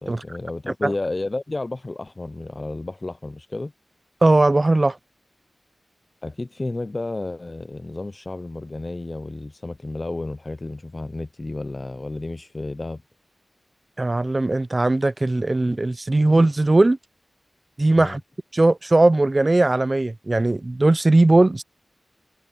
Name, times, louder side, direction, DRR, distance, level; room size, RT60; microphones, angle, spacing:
voice 1, 0.0-3.7 6.2-13.0 18.0-18.2, left 2 dB, 35° left, 0.4 m, -31 dB
voice 2, 4.2-5.0 14.0-17.0 17.8-18.2 18.5-21.6, right 2 dB, 30° right, 0.6 m, -18 dB
wide cardioid pair, 105°, 0 cm